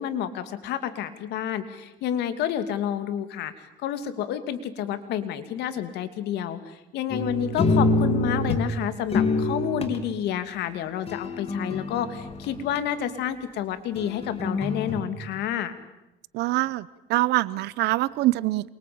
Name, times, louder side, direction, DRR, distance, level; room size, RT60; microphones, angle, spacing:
voice 1, 0.0-3.5 3.8-15.7, left 9 dB, 80° left, 10 dB, 2.7 m, -29 dB
sound 1, 7.1-8.7 9.1-10.0 11.1-12.8 14.0-15.0, left 2 dB, 35° left, 3.4 m, -26 dB
voice 2, 16.3-18.7, right 18 dB, 85° right, 20 dB, 0.9 m, -24 dB
28.0 x 24.0 x 8.8 m, 0.92 s
cardioid pair, 110°, 17 cm